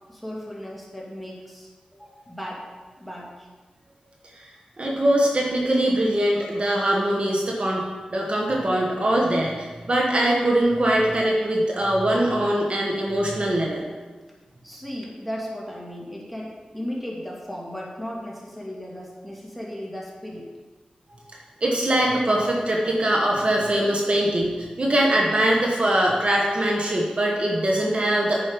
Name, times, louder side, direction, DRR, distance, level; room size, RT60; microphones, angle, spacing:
voice 1, 0.1-2.7 3.0-3.5 14.6-20.5 24.1-24.2, equal, ahead, -3 dB, 2.4 m, -36 dB
voice 2, 4.8-13.8 21.6-28.4, right 1 dB, 45° right, -2 dB, 1.5 m, -22 dB
9.0 x 5.4 x 5.3 m, 1.3 s
cardioid pair, 50°, 3 cm